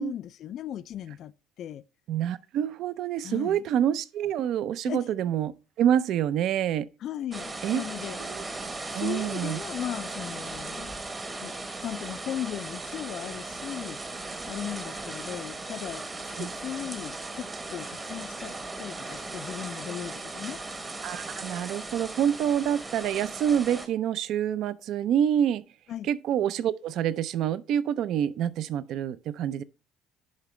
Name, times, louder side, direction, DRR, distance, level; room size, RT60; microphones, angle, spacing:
voice 1, 0.0-1.3 1.6-1.8 3.2-3.6 4.9-5.1 7.0-8.2 8.9-11.0 11.4-11.5 11.8-14.0 14.5-20.6 25.9-26.1, left 11 dB, 50° left, 0.3 m, -37 dB
voice 2, 2.1-6.9 7.6-7.8 8.2-8.4 8.9-9.6 16.4-16.5 21.0-25.6 26.0-29.6, right 9 dB, 55° right, 0.5 m, -27 dB
sound 1, 7.3-23.9, right 2 dB, 20° right, 0.9 m, -37 dB
10.5 x 5.0 x 3.2 m
cardioid pair, 140°, 0 cm